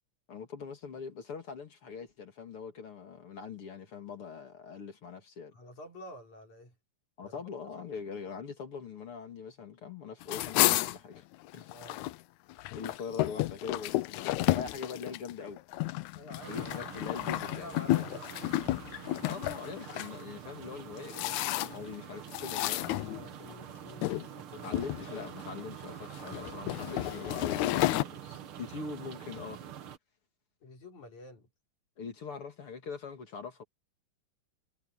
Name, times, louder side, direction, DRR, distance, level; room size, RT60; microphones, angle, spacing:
voice 1, 0.3-5.5 7.2-11.2 11.5-11.7 12.7-15.6 16.5-17.7 19.2-23.2 24.6-29.6 32.0-33.6, left 5 dB, 45° left, 2.8 m, -42 dB
voice 2, 5.5-6.7 7.2-7.9 11.7-12.0 16.1-16.7 17.6-18.3 23.1-25.3 26.8-27.4 30.6-31.5, left 1 dB, 60° left, 6.3 m, -50 dB
sound 1, 10.2-12.2 12.5-20.1 20.7-22.0 22.3-23.5 24.0-24.3 24.6-25.4 26.1-28.0, left 17 dB, 75° left, 1.8 m, -31 dB
sound 2, 16.4-30.0, right 9 dB, 55° right, 1.6 m, -46 dB
omnidirectional pair, 3.8 m